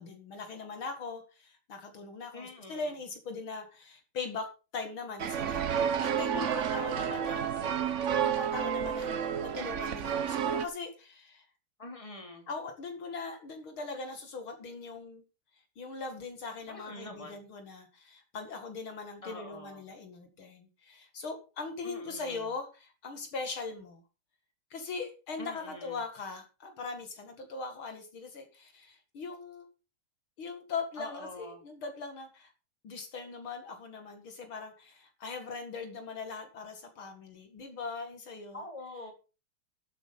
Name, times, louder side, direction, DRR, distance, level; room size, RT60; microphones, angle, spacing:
voice 1, 0.0-9.1 9.4-11.5 12.5-15.2 15.8-24.0 24.7-29.6 30.4-32.5 32.8-38.6, left 4 dB, 70° left, 5 dB, 2.8 m, -40 dB
voice 2, 2.3-2.9 6.3-7.4 11.8-12.5 16.7-17.4 19.2-19.9 21.8-22.5 25.4-26.0 31.0-31.6 38.5-39.1, left 2 dB, 15° left, 3 dB, 3.4 m, -45 dB
sound 1, 5.2-10.7, right 8 dB, 50° right, 0.9 m, -30 dB
12.0 x 8.5 x 5.3 m, 0.32 s
omnidirectional pair, 2.4 m